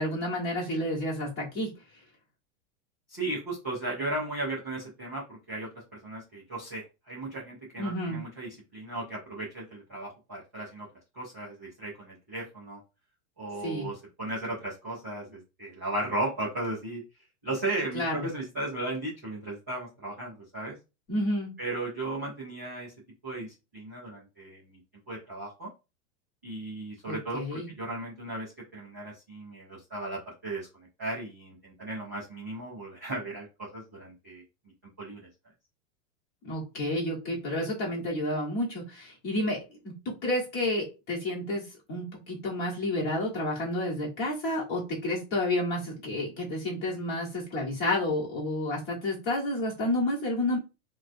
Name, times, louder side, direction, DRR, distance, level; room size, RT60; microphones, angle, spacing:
voice 1, 0.0-1.7 7.8-8.2 13.6-13.9 17.9-18.3 21.1-21.5 27.0-27.7 36.4-50.6, left 1 dB, 25° left, -4 dB, 1.4 m, -30 dB
voice 2, 3.1-5.7 6.0-10.9 11.2-12.8 13.4-17.0 17.4-20.7 21.6-22.9 23.2-24.8 25.1-25.7 26.4-34.4 35.0-35.3, right 2 dB, 15° right, -10 dB, 0.3 m, -36 dB
4.7 x 2.3 x 2.6 m, 0.27 s
supercardioid pair, 180°, 42 cm